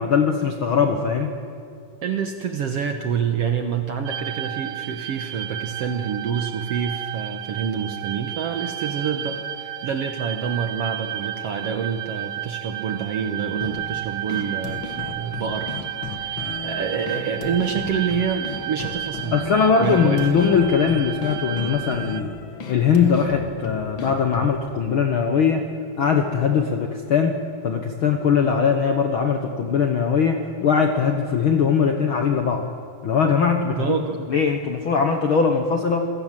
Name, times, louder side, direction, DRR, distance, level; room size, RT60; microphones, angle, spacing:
voice 1, 0.0-1.3 19.3-22.3 22.7-25.6 26.0-27.4 27.6-32.6 33.0-33.9 34.3-36.1, left 6 dB, 85° left, 4 dB, 1.1 m, -20 dB
voice 2, 2.0-19.4 19.8-20.4 33.8-34.2, right 7 dB, 65° right, 6 dB, 1.5 m, -27 dB
sound 1, 4.1-22.2, right 12 dB, 80° right, 1.7 m, -32 dB
sound 2, 13.6-24.6, left 5 dB, 45° left, 1.7 m, -35 dB
26.5 x 17.5 x 7.6 m, 2.7 s
omnidirectional pair, 4.3 m